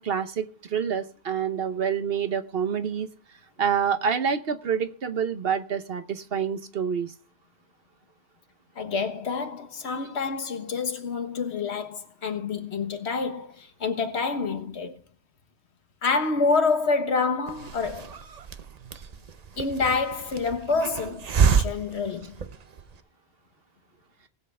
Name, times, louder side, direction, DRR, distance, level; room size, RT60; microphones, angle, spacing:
voice 1, 0.0-3.1 3.6-7.1, right 7 dB, 65° right, 1.1 m, -27 dB
voice 2, 8.7-15.0 16.0-18.2 19.6-22.4, left 4 dB, 85° left, 1.6 m, -27 dB
Hiss, 17.5-23.0, right 6 dB, 45° right, 0.7 m, -28 dB
19.0 x 7.8 x 3.3 m
omnidirectional pair, 1.1 m